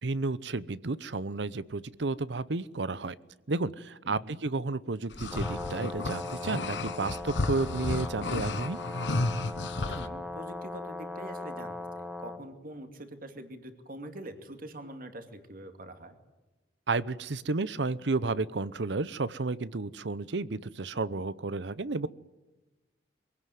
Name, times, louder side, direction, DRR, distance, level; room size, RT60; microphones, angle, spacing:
voice 1, 0.0-3.2 3.5-8.8 16.9-22.1, right 3 dB, 75° right, 18 dB, 0.8 m, -32 dB
voice 2, 4.0-4.4 9.8-16.2, right 1 dB, 55° right, 7 dB, 2.5 m, -45 dB
sound 1, 5.1-10.1, left 2 dB, 85° left, 1.1 m, -33 dB
Brass instrument, 5.2-12.4, left 2 dB, 5° right, 1.7 m, -39 dB
23.5 x 17.0 x 9.3 m, 1.1 s
head